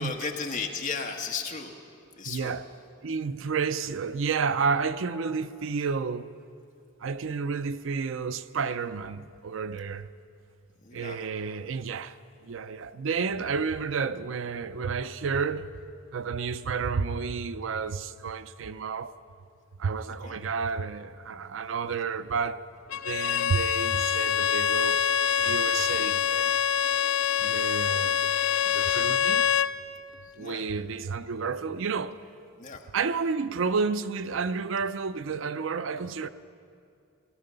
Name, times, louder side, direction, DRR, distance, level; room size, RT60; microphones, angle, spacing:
voice 1, 0.0-1.7 2.2-2.5 10.8-11.2 20.2-20.4 30.4-30.6 32.6-32.8, left 5 dB, 40° left, 1.3 m, -34 dB
voice 2, 2.3-2.7 3.0-6.3 7.0-10.1 10.9-12.2 12.4-15.7 16.1-19.1 19.8-22.6 23.0-25.0 25.4-26.6 27.4-28.4 28.7-29.5 30.4-32.2 32.9-36.3, right 5 dB, 65° right, 0.5 m, -31 dB
Bowed string instrument, 22.9-29.8, left 9 dB, 85° left, 0.4 m, -25 dB
17.0 x 12.0 x 6.8 m
head